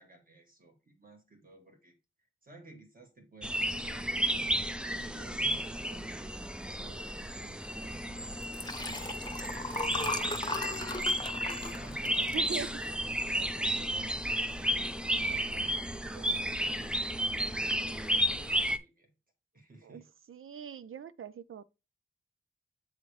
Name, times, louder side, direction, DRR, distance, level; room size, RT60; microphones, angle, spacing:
voice 1, 0.0-2.0 2.4-4.0 5.0-14.8 15.2-15.7 16.1-17.9 18.2-19.1 19.5-20.1, right 3 dB, 45° right, 1.8 m, -56 dB
sound 1, 3.4-18.8, equal, 5° right, 0.4 m, -33 dB
Liquid, 8.4-13.1 13.6-13.8 14.1-14.2, left 2 dB, 20° left, 0.8 m, -37 dB
voice 2, 12.3-12.7 19.9-20.0 20.3-21.6, right 7 dB, 85° right, 0.5 m, -41 dB
8.0 x 3.8 x 3.2 m
wide cardioid pair, 95°, 21 cm